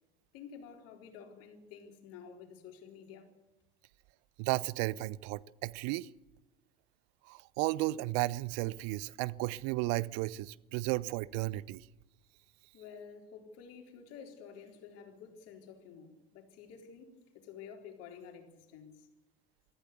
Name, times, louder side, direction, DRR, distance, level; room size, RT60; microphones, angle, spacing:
voice 1, 0.3-3.3 12.7-19.1, left 7 dB, 50° left, 4.0 m, -51 dB
voice 2, 4.4-6.1 7.3-11.9, right 19 dB, 50° right, 0.7 m, -34 dB
22.5 x 14.5 x 8.1 m
figure-of-eight pair, 70°, 30 cm